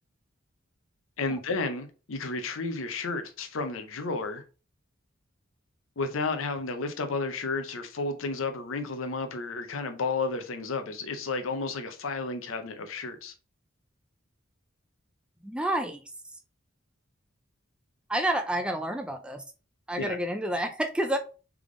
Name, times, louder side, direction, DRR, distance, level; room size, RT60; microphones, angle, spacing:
voice 1, 1.2-4.4 6.0-13.3 20.0-20.2, left 3 dB, 80° left, 0.6 m, -32 dB
voice 2, 15.4-16.0 18.1-19.4 19.9-21.2, right 1 dB, 5° right, 0.5 m, -29 dB
3.5 x 3.4 x 3.7 m
head